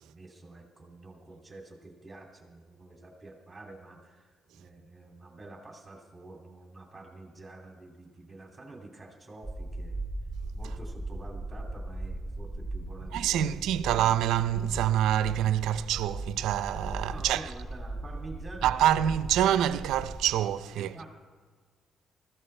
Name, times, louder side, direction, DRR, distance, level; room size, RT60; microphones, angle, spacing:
voice 1, 0.0-10.0 10.5-13.9 17.1-19.0 20.8-21.0, right 2 dB, 20° right, 2.5 m, -48 dB
sound 1, 9.4-20.4, right 2 dB, 15° left, 4.1 m, -38 dB
voice 2, 13.1-17.5 18.6-20.9, right 11 dB, 85° right, 0.5 m, -26 dB
20.0 x 14.5 x 3.3 m
cardioid pair, 90°, 0 cm